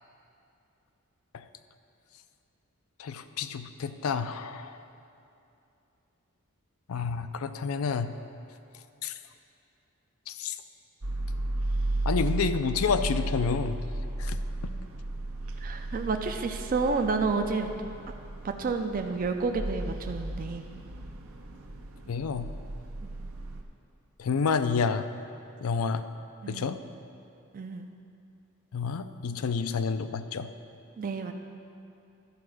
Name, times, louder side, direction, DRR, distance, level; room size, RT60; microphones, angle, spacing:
voice 1, 3.0-4.8 6.9-8.2 9.0-9.1 10.3-10.5 12.1-13.8 14.2-14.4 22.1-22.5 24.2-25.1 25.6-26.1 26.5-26.8 28.7-30.5, left 5 dB, 80° left, 11 dB, 0.5 m, -29 dB
sound 1, 11.0-23.6, right 2 dB, 75° right, 0.7 m, -34 dB
voice 2, 15.6-17.7 18.4-20.6 23.0-23.1 26.4-26.7 27.5-27.9 31.0-31.3, right 4 dB, 40° right, 5 dB, 0.4 m, -30 dB
12.0 x 4.8 x 6.3 m, 2.7 s
head